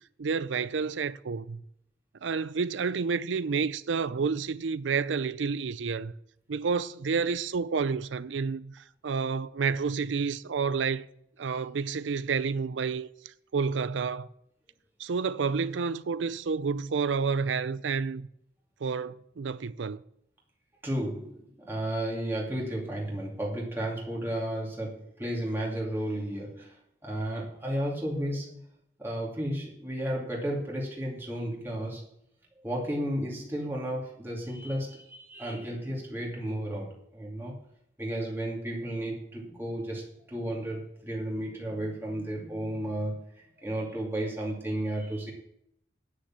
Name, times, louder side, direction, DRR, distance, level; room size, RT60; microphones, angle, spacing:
voice 1, 0.2-1.6 2.2-6.1 6.5-11.1 11.4-13.1 13.5-14.3 15.0-18.3 18.8-20.0, right 5 dB, 85° right, 0.5 m, -29 dB
voice 2, 20.8-28.7 29.0-32.0 32.6-37.6 38.0-45.3, right 1 dB, 10° right, 2.5 m, -33 dB
10.0 x 6.5 x 7.4 m
head